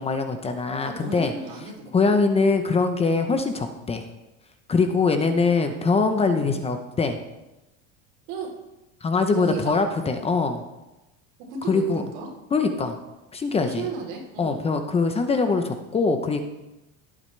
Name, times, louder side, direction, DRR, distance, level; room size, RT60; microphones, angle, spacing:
voice 1, 0.0-1.3 1.9-4.1 4.7-7.2 9.0-10.6 11.7-12.0 12.5-13.0 13.3-13.9 14.4-16.4, left 4 dB, 20° left, 7 dB, 0.8 m, -23 dB
voice 2, 0.8-2.2 5.1-6.0 8.3-8.5 9.3-9.8 11.5-12.3 13.6-14.6, right 4 dB, 75° right, -1 dB, 3.6 m, -35 dB
17.5 x 8.6 x 3.3 m, 0.99 s
cardioid pair, 145°, 32 cm